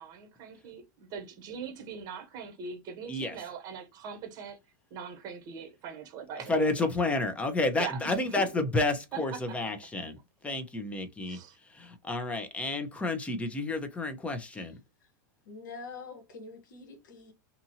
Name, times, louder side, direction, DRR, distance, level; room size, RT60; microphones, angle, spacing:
voice 1, 0.0-4.6 4.9-6.6 7.8-8.6 9.1-9.5 11.3-11.6, right 6 dB, 40° right, 1.2 m, -41 dB
voice 2, 6.5-10.2 10.4-11.4 11.7-14.7, left 2 dB, 10° left, 0.7 m, -30 dB
voice 3, 15.4-17.3, left 4 dB, 85° left, 1.1 m, -45 dB
2.7 x 2.6 x 2.7 m
supercardioid pair, 125°, 10 cm